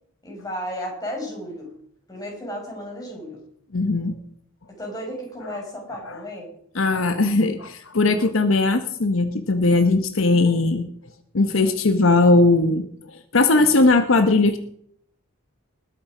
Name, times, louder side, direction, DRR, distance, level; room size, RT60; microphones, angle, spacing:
voice 1, 0.2-1.7 2.1-3.4 4.8-6.5, equal, 20° left, -1 dB, 5.6 m, -33 dB
voice 2, 3.7-4.2 6.1-6.2 6.8-10.9 11.3-12.8 13.3-14.6, left 3 dB, 70° left, 9 dB, 0.9 m, -19 dB
20.5 x 8.7 x 4.9 m, 0.67 s
head